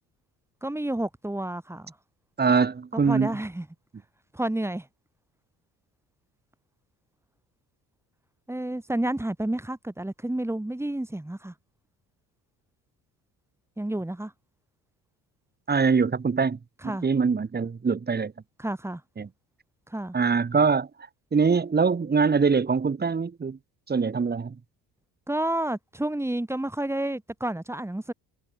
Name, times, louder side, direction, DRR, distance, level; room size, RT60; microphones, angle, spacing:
voice 1, 0.6-1.9 3.1-3.7 4.3-4.9 8.5-11.5 13.8-14.3 16.8-17.1 18.6-19.0 19.9-20.2 25.3-28.1, right 1 dB, 5° right, 2.5 m, -30 dB
voice 2, 2.4-3.3 15.7-16.6 17.0-18.3 19.2-19.3 20.1-20.9 21.3-23.6 23.9-24.6, right 5 dB, 25° right, 2.0 m, -23 dB
cardioid pair, 95°, 36 cm